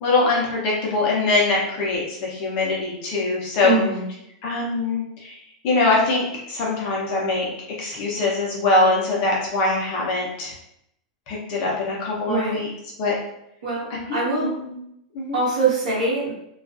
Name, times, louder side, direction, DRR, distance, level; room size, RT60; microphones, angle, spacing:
voice 1, 0.0-3.8 4.4-5.4 5.6-7.5 7.8-10.5 11.3-12.7 13.0-13.1 14.1-14.8 15.1-15.4, left 3 dB, 35° left, -4 dB, 0.6 m, -23 dB
voice 2, 3.6-4.1 12.3-12.6 13.6-14.5 15.3-16.3, right 3 dB, 85° right, -7 dB, 0.9 m, -23 dB
2.4 x 2.3 x 2.4 m, 0.77 s
supercardioid pair, 160°, 4 cm